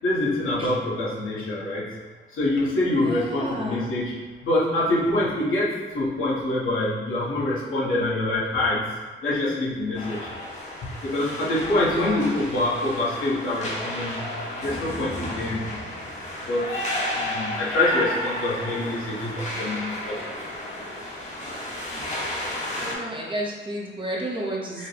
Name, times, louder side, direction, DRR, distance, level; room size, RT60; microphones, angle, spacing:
voice 1, 0.0-1.8 2.3-4.1 4.4-8.9 9.2-10.3 11.0-14.3 14.6-15.6 16.5-16.7 17.1-20.2 24.8-24.9, left 1 dB, 80° left, -7 dB, 1.2 m, -25 dB
voice 2, 2.9-3.8 11.9-12.3 21.9-22.0 22.8-24.9, right 1 dB, 25° right, -3 dB, 0.7 m, -32 dB
sound 1, 9.9-22.9, left 1 dB, 35° left, 1.0 m, -32 dB
5.4 x 2.2 x 3.3 m, 1.3 s
wide cardioid pair, 125°, 21 cm